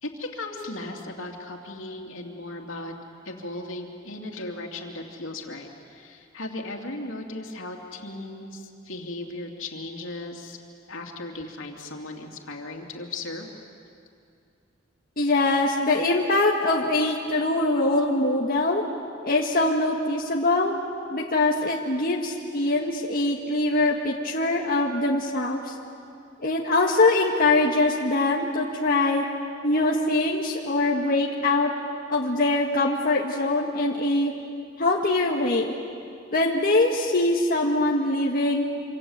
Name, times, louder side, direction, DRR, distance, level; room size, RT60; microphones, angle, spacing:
voice 1, 0.0-2.9 3.2-10.6 10.9-13.5, left 2 dB, 80° left, 2 dB, 2.9 m, -36 dB
voice 2, 15.2-18.8 19.2-20.7 21.1-25.7 26.4-29.2 29.6-31.7 32.1-34.3 34.8-35.8 36.3-38.6, left 2 dB, 50° left, -1 dB, 1.7 m, -23 dB
27.0 x 26.5 x 8.1 m, 2.5 s
head